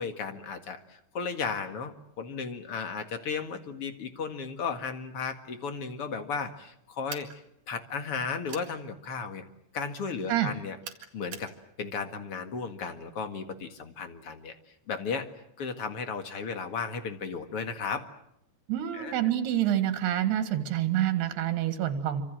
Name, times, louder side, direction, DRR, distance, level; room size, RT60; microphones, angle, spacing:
voice 1, 0.0-9.4 9.7-10.8 11.1-11.5 11.8-15.3 15.6-18.1 18.9-19.2, left 5 dB, 45° left, 7 dB, 2.2 m, -35 dB
sound 1, 7.1-7.4 8.5-8.7 10.8-11.5, right 7 dB, 55° right, 3.3 m, -42 dB
voice 2, 18.7-22.2, right 11 dB, 85° right, 9 dB, 3.8 m, -27 dB
26.5 x 26.0 x 7.7 m, 0.79 s
omnidirectional pair, 4.5 m